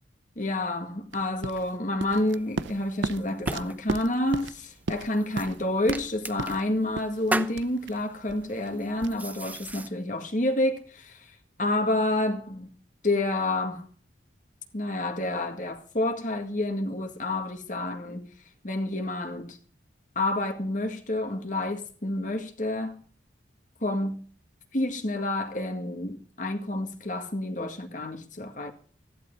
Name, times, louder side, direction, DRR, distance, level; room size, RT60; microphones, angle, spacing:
voice 1, 0.4-12.7 13.0-13.9 14.7-18.3 18.6-19.6 20.2-23.0 23.8-24.2 24.7-28.7, left 1 dB, 45° left, 1.9 m, -29 dB
sound 1, 1.1-9.9, right 3 dB, 80° right, 0.7 m, -36 dB
sound 2, 2.3-9.9, right 1 dB, 10° right, 0.8 m, -38 dB
15.5 x 11.0 x 5.3 m
head